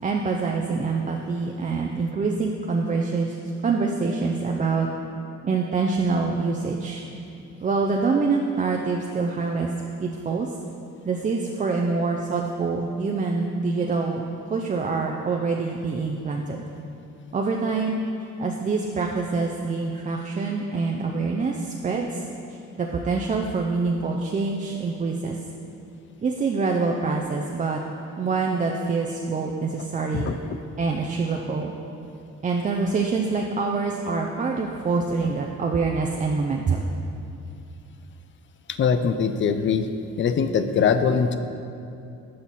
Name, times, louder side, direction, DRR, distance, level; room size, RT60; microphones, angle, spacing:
voice 1, 0.0-3.4 3.6-4.9 5.4-7.0 7.6-9.7 10.0-10.5 11.1-14.2 14.5-16.6 17.3-18.0 18.4-22.2 22.5-25.4 26.2-27.8 28.2-30.3 30.8-31.8 32.4-36.8, right 4 dB, 25° right, 1 dB, 0.4 m, -25 dB
voice 2, 38.7-39.9 40.2-41.4, left 6 dB, 40° left, 10 dB, 0.4 m, -22 dB
6.3 x 5.6 x 4.0 m, 2.7 s
cardioid pair, 90°, 30 cm